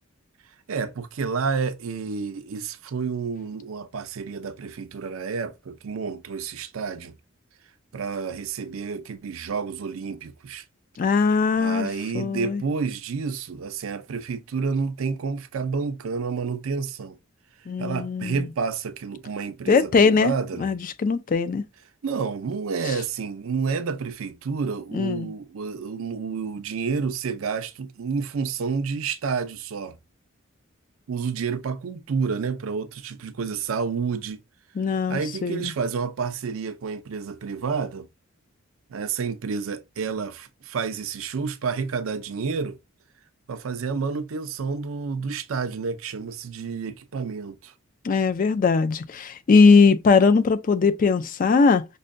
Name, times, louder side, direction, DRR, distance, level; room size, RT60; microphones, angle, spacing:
voice 1, 0.7-7.1 7.9-10.6 11.6-17.2 17.8-20.7 22.0-30.0 31.1-34.4 35.1-38.1 38.9-42.8 43.5-47.7, right 5 dB, 80° right, 0.5 m, -29 dB
voice 2, 11.0-11.9 12.1-12.6 17.7-18.5 19.7-20.3 20.6-21.6 24.9-25.3 34.8-35.7 48.0-51.9, left 4 dB, 40° left, 0.4 m, -20 dB
5.3 x 2.2 x 2.5 m
head